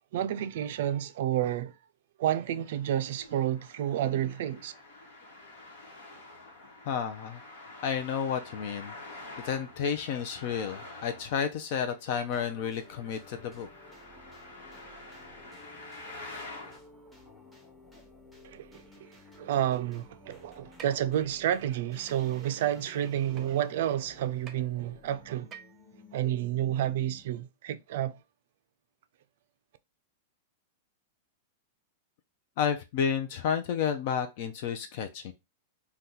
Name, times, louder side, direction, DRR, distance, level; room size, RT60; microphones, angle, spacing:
voice 1, 0.0-1.7 2.2-4.7 18.4-18.7 19.4-25.5 26.1-28.2, right 11 dB, 65° right, 0.3 m, -30 dB
Traffic noise roadway noise, 2.4-16.8, left 2 dB, 80° left, 1.1 m, -48 dB
voice 2, 6.9-7.4 7.8-8.9 9.4-13.7 32.6-35.3, left 7 dB, 55° left, 0.4 m, -31 dB
sound 1, 12.3-27.4, left 2 dB, 5° left, 0.8 m, -54 dB
sound 2, 20.8-20.9 22.1-22.2 23.4-23.5 24.5-24.6 25.5-25.8, right 7 dB, 25° right, 0.6 m, -46 dB
2.7 x 2.2 x 3.7 m
hypercardioid pair, 135°, 0 cm